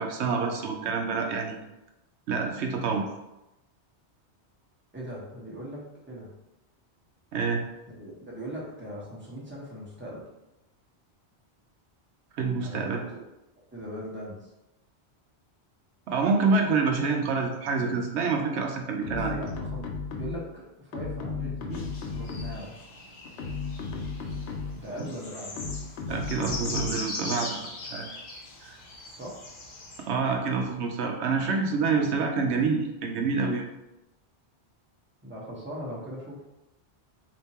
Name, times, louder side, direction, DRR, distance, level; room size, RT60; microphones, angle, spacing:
voice 1, 0.0-1.6 2.3-3.0 7.3-7.6 12.3-13.0 16.1-19.3 26.1-28.1 28.6-28.8 30.1-33.7, right 4 dB, 85° right, 2 dB, 0.9 m, -27 dB
voice 2, 4.9-6.3 7.9-10.3 12.6-13.2 13.7-14.5 19.2-19.8 20.1-22.7 24.7-25.7 29.1-29.4 30.2-30.4 35.2-36.4, equal, 10° right, -5 dB, 1.0 m, -39 dB
sound 1, 19.0-20.5 20.9-22.7 23.2-24.9 25.6-27.1, left 4 dB, 75° left, 0.9 m, -35 dB
sound 2, 21.7-30.1, left 2 dB, 45° left, 0.9 m, -40 dB
3.5 x 2.8 x 4.2 m, 0.93 s
omnidirectional pair, 1.1 m